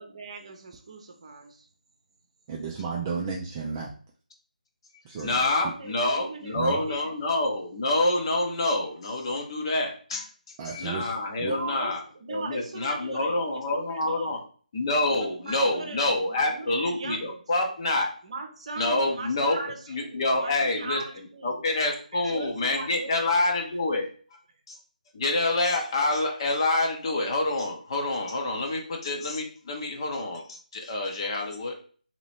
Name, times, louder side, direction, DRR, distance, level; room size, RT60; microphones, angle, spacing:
voice 1, 0.0-1.7 5.6-7.1 11.4-14.3 15.2-17.4 18.2-21.6 22.1-23.3, right 3 dB, 45° right, 4 dB, 0.8 m, -39 dB
voice 2, 2.5-3.9 5.0-5.4 6.5-6.8 10.6-11.1 11.4-11.6, right 5 dB, 20° right, -1 dB, 0.4 m, -33 dB
voice 3, 5.2-12.0 12.3-14.4 14.7-18.1 18.8-19.6 19.9-24.1 24.7-24.8 25.1-31.7, left 2 dB, 35° left, 2 dB, 0.9 m, -27 dB
3.0 x 2.9 x 4.2 m, 0.43 s
figure-of-eight pair, 155°, 5 cm